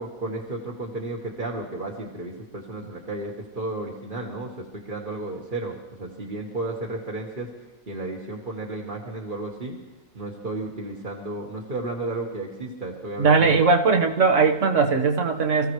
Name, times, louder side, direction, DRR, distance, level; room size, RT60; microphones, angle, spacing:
voice 1, 0.0-7.5 7.9-9.8 10.1-13.6, right 2 dB, 35° right, -2 dB, 1.5 m, -33 dB
voice 2, 13.2-15.7, right 4 dB, 60° right, 4 dB, 1.5 m, -19 dB
25.0 x 15.0 x 3.2 m, 1.2 s
omnidirectional pair, 1.5 m